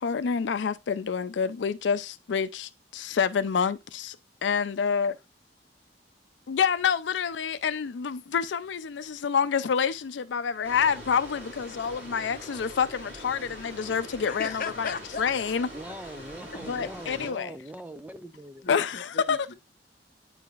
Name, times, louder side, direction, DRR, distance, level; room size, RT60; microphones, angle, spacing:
voice 1, 0.0-4.2 4.4-5.1 6.5-15.7 16.6-17.5 18.7-19.5, left 6 dB, 85° left, 0.4 m, -28 dB
sound 1, 10.6-17.3, equal, 40° right, 4.4 m, -43 dB
voice 2, 14.2-15.3 18.6-19.5, left 5 dB, 55° left, 0.9 m, -37 dB
voice 3, 15.7-18.7, right 1 dB, 10° right, 0.5 m, -42 dB
9.3 x 4.7 x 2.4 m
head